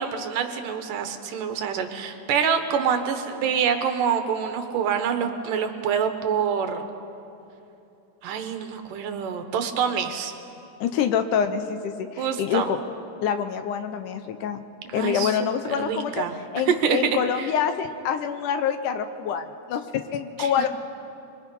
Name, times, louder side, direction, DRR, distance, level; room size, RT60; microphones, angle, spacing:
voice 1, 0.0-6.8 8.2-10.3 12.2-12.7 14.9-15.4 15.7-16.3 16.7-17.5 20.4-20.5, right 7 dB, 75° right, 7 dB, 2.7 m, -26 dB
voice 2, 10.8-12.8 13.2-14.6 14.9-16.3 16.5-19.8 20.1-20.7, left 8 dB, 75° left, 9 dB, 2.2 m, -26 dB
24.0 x 22.5 x 5.3 m, 2.8 s
omnidirectional pair, 4.0 m